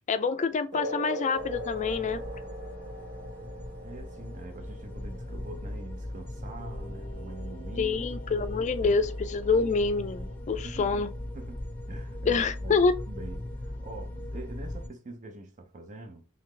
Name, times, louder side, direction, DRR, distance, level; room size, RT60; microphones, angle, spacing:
voice 1, 0.0-2.2 7.8-11.1 12.3-12.9, left 4 dB, 35° left, 0.4 m, -26 dB
sound 1, 0.7-7.7, right 1 dB, 60° right, 1.2 m, -40 dB
sound 2, 1.3-14.9, left 1 dB, 10° left, 0.7 m, -39 dB
voice 2, 3.8-8.1 8.8-9.0 10.5-11.6 11.9-16.3, right 2 dB, 35° right, 0.6 m, -44 dB
Singing, 6.6-10.4 10.7-10.9, equal, 85° right, 1.4 m, -50 dB
3.9 x 3.2 x 3.2 m
head